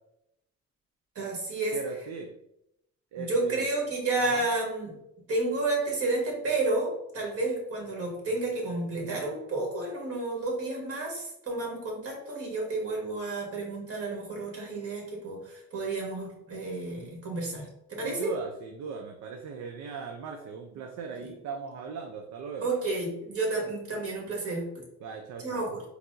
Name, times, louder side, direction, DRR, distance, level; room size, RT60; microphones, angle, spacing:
voice 1, 1.1-1.8 3.2-5.0 5.3-18.3 21.2-21.3 22.6-24.8 25.4-25.8, right 2 dB, 50° right, -1 dB, 1.3 m, -31 dB
voice 2, 1.7-2.3 3.1-3.7 4.2-4.5 18.0-22.7 25.0-25.7, right 5 dB, 70° right, 4 dB, 0.5 m, -38 dB
4.5 x 2.0 x 2.5 m, 0.82 s
cardioid pair, 90°, 30 cm